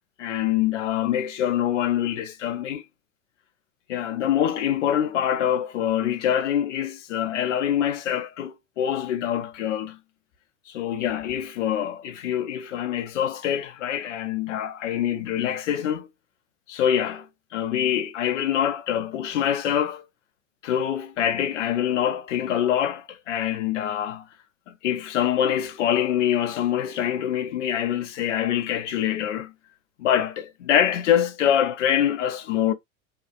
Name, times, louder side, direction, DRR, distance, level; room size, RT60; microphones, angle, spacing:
voice 1, 0.2-2.8 3.9-10.0 10.7-16.1 16.7-20.1 20.6-24.3 24.7-29.5 30.0-32.7, left 10 dB, 60° left, 0.6 m, -25 dB
2.7 x 2.4 x 2.3 m
figure-of-eight pair, 85°, 41 cm